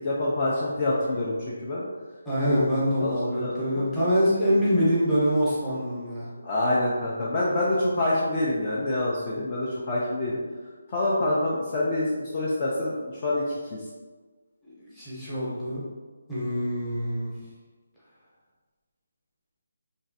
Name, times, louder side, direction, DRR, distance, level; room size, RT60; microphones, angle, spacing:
voice 1, 0.0-1.8 2.4-2.6 3.0-3.9 6.4-10.4 10.9-13.8, left 1 dB, 30° left, -6 dB, 0.4 m, -26 dB
voice 2, 2.2-6.3 14.8-15.8 16.3-17.3, equal, 5° left, -11 dB, 0.8 m, -25 dB
3.0 x 2.5 x 2.6 m, 1.4 s
figure-of-eight pair, 165°, 0 cm